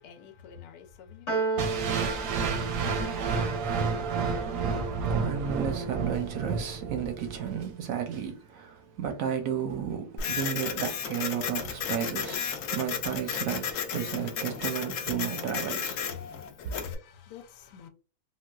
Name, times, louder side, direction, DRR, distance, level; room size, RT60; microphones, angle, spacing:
voice 1, 0.0-1.4 16.3-17.9, left 8 dB, 85° left, 1.1 m, -48 dB
Piano, 1.3-7.8, right 4 dB, 40° left, 0.8 m, -37 dB
sound 1, 1.6-7.6, right 5 dB, 85° right, 1.2 m, -30 dB
voice 2, 4.6-16.0, right 8 dB, 70° right, 0.8 m, -33 dB
Printer, 10.2-16.9, left 7 dB, 70° left, 0.8 m, -33 dB
3.8 x 2.2 x 2.3 m
omnidirectional pair, 1.7 m